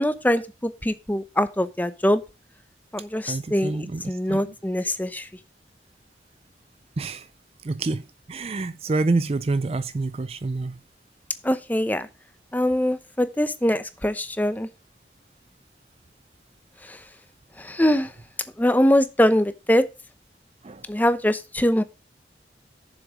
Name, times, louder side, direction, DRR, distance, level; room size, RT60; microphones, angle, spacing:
voice 1, 0.0-2.2 2.9-5.3 11.4-12.1 12.5-14.7 16.8-17.0 17.6-18.1 18.6-19.9 20.9-21.8, left 1 dB, 10° left, 0.7 m, -23 dB
voice 2, 3.3-4.4 7.0-7.3 7.6-8.0 8.3-10.8 20.6-20.8, right 3 dB, 35° right, 0.4 m, -27 dB
7.3 x 7.2 x 5.0 m
head